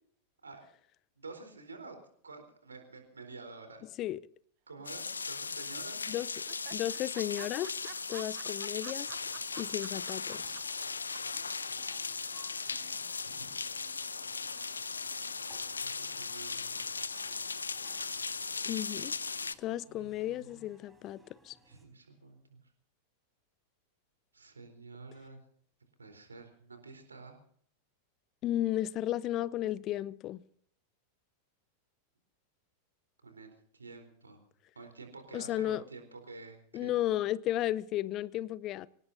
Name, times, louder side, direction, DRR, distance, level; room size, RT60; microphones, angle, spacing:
voice 1, 1.2-3.8 4.7-6.1 13.3-13.4 15.8-16.9 19.9-20.7 21.6-22.6 24.3-25.4 26.0-27.4 33.2-34.4 34.8-37.0, right 3 dB, 75° right, 4.0 m, -49 dB
sound 1, 4.8-19.5, left 4 dB, 75° left, 0.6 m, -38 dB
sound 2, 4.8-5.4 5.7-5.8 6.1-6.2 6.5-10.8 11.1-11.2, right 21 dB, 45° right, 0.8 m, -50 dB
voice 2, 6.7-7.7 8.1-9.1 9.6-10.5 18.6-19.1 19.6-21.6 28.4-30.4 35.3-35.8 36.7-38.9, left 13 dB, 35° left, 0.6 m, -34 dB
sound 3, 8.8-21.8, right 1 dB, 5° right, 4.4 m, -62 dB
25.0 x 18.5 x 2.7 m
figure-of-eight pair, 90°, 0 cm